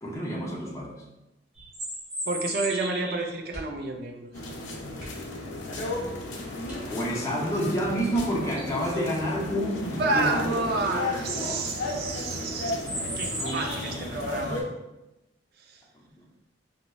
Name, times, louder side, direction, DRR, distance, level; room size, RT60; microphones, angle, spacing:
voice 1, 0.0-1.0 6.9-11.7 13.4-13.7 14.3-14.6 15.9-16.3, equal, 15° left, -3 dB, 0.5 m, -30 dB
sound 1, 1.5-3.4 7.9-8.0 8.4-8.8 10.9-11.0 11.3-11.6 12.8-14.1, right 1 dB, 35° right, 1.2 m, -35 dB
voice 2, 2.3-4.3 10.0-14.7 15.7-15.8, right 3 dB, 55° right, 3 dB, 0.4 m, -30 dB
sound 2, 3.5-4.0 4.3-4.5 4.9-5.4 6.0-6.1 6.6-7.4 8.1-8.9 10.4-10.7 11.1-11.2, equal, 5° right, 1.4 m, -46 dB
sound 3, 4.3-14.6, left 2 dB, 70° left, 0.5 m, -34 dB
3.9 x 2.1 x 2.2 m, 0.98 s
head